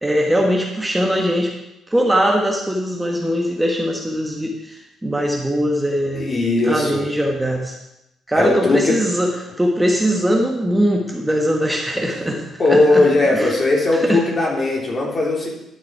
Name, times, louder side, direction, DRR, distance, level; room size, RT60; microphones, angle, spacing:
voice 1, 0.0-1.5 1.9-6.3 6.6-7.8 8.3-12.4 12.7-13.0 13.3-13.5 14.0-14.2, equal, 10° right, 0 dB, 1.5 m, -20 dB
voice 2, 6.1-7.1 8.3-9.0 11.9-15.5, left 2 dB, 40° left, -2 dB, 3.4 m, -19 dB
12.0 x 7.3 x 4.8 m, 0.89 s
cardioid pair, 90°, 0 cm